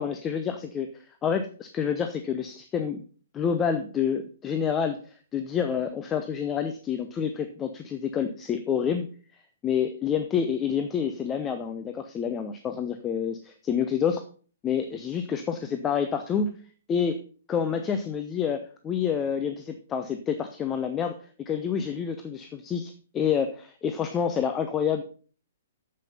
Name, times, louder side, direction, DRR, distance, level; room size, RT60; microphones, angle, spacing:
voice 1, 0.0-3.0 3.3-9.1 9.6-14.2 14.6-16.6 16.9-17.2 17.5-21.2 21.5-25.0, left 7 dB, 20° left, 7 dB, 0.8 m, -28 dB
9.1 x 7.8 x 5.5 m, 0.41 s
figure-of-eight pair, 120°, 0 cm